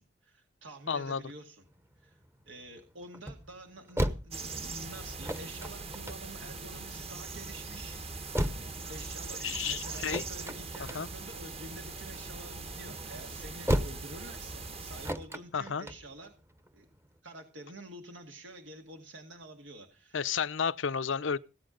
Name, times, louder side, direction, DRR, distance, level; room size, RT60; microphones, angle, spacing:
voice 1, 0.0-1.6 2.0-2.2 2.5-8.0 8.6-16.3 16.7-16.9 17.2-20.3, right 1 dB, 85° right, 2.0 m, -48 dB
voice 2, 0.9-1.2 9.4-10.2 10.9-11.1 15.5-15.9 20.1-21.4, left 6 dB, 85° left, 0.7 m, -32 dB
sound 1, 1.6-17.2, equal, 15° right, 0.9 m, -37 dB
sound 2, 4.3-15.1, right 3 dB, 35° right, 1.1 m, -41 dB
17.0 x 8.4 x 5.1 m
head